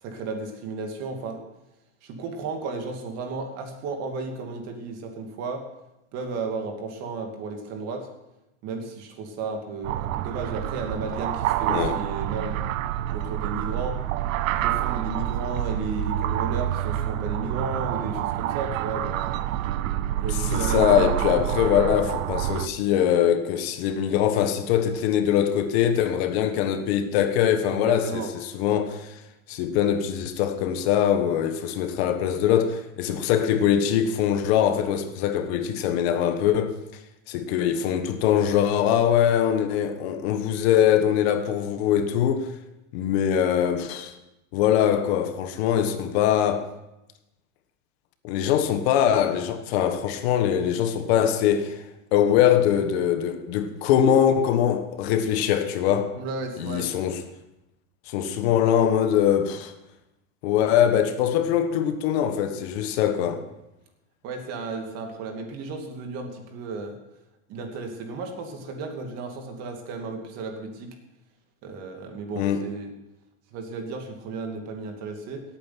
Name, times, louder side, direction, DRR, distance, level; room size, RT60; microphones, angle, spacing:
voice 1, 0.0-1.4 2.0-5.6 6.1-8.1 8.6-12.6 13.1-14.0 14.5-19.4 20.2-21.4 27.7-28.3 56.2-57.0 64.2-67.0 67.5-71.0 71.6-72.9 73.5-75.4, right 4 dB, 40° right, 2.5 m, -34 dB
sound 1, 9.8-22.7, right 12 dB, 80° right, 0.8 m, -27 dB
voice 2, 20.5-29.1 29.5-36.7 37.3-42.5 42.9-44.1 44.5-46.7 48.2-51.8 52.1-56.1 56.6-57.2 58.1-59.7 60.4-63.4 72.4-72.6, left 9 dB, 55° left, 1.4 m, -22 dB
17.0 x 8.8 x 5.9 m
supercardioid pair, 150°, 39 cm